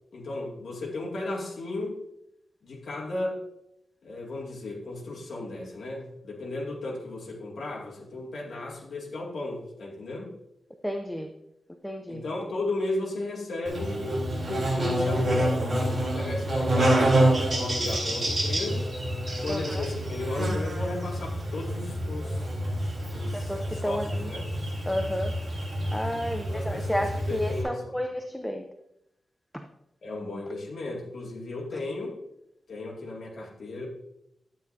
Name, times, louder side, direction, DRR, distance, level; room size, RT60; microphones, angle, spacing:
voice 1, 0.1-2.0 2.6-3.4 4.0-10.3 12.1-17.2 17.5-18.9 19.4-22.5 23.1-23.5 23.8-24.4 26.3-28.0 30.0-32.2 32.7-33.9, left 2 dB, 60° left, -3 dB, 2.1 m, -34 dB
voice 2, 10.8-11.3 11.8-12.2 19.5-19.8 23.3-24.3 24.9-25.3 25.9-28.7 29.5-29.7, equal, 5° left, 5 dB, 0.6 m, -31 dB
Buzz, 13.6-27.6, right 1 dB, 35° right, 3.8 m, -28 dB
12.0 x 8.7 x 2.7 m, 0.81 s
wide cardioid pair, 165°, 0 cm